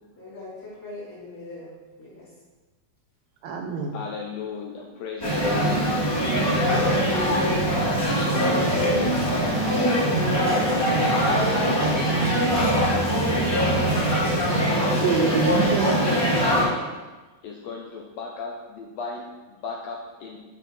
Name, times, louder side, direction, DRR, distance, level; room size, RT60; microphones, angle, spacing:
voice 1, 0.1-2.3, left 2 dB, 25° left, -10 dB, 2.8 m, -41 dB
voice 2, 3.4-4.0 5.6-6.8 15.0-16.2, right 4 dB, 75° right, 3 dB, 1.8 m, -28 dB
voice 3, 3.9-5.7 6.7-7.0 8.7-12.5 12.8-13.1 13.6-13.9 14.8-15.8 17.4-20.4, left 5 dB, 75° left, -1 dB, 1.6 m, -35 dB
sound 1, 5.2-16.6, equal, 10° left, 1.7 m, -22 dB
9.0 x 4.4 x 4.2 m, 1.2 s
omnidirectional pair, 3.4 m